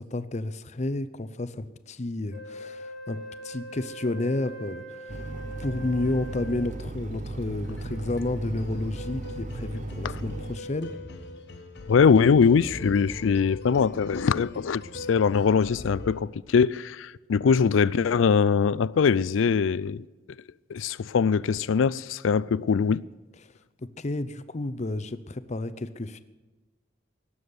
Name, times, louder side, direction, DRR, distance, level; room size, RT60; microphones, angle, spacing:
voice 1, 0.0-5.2 5.6-11.0 23.4-23.5 23.8-26.2, left 2 dB, 35° left, 0.6 m, -31 dB
Wind instrument woodwind instrument, 2.3-7.0, right 1 dB, 90° right, 3.6 m, -42 dB
sound 1, 5.1-10.6, right 2 dB, 40° right, 0.7 m, -36 dB
sound 2, 6.0-16.2, left 2 dB, 60° left, 1.3 m, -42 dB
voice 2, 11.9-20.0 20.7-23.0, left 6 dB, 80° left, 0.4 m, -22 dB
17.5 x 7.1 x 9.5 m
head